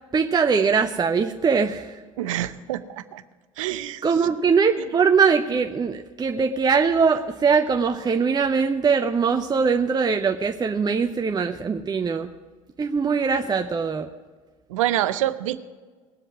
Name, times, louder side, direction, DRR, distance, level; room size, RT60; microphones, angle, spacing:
voice 1, 0.1-2.0 4.0-12.3 12.8-14.1, right 5 dB, 25° right, 5 dB, 0.8 m, -21 dB
voice 2, 2.2-3.2 3.6-4.0 14.7-15.6, right 13 dB, 75° right, 13 dB, 0.7 m, -26 dB
19.5 x 7.8 x 6.1 m, 1.4 s
hypercardioid pair, 65°, 17 cm